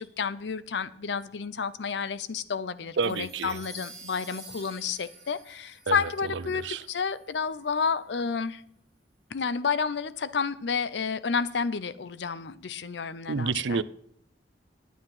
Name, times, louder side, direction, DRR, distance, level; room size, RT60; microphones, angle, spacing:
voice 1, 0.0-8.6 9.3-13.8, left 5 dB, 70° left, 0.6 m, -30 dB
sound 1, 3.0-7.5, right 2 dB, 5° left, 2.9 m, -49 dB
voice 2, 3.0-3.6 5.9-6.8 13.3-13.8, right 4 dB, 85° right, 0.5 m, -30 dB
9.6 x 9.4 x 5.6 m
head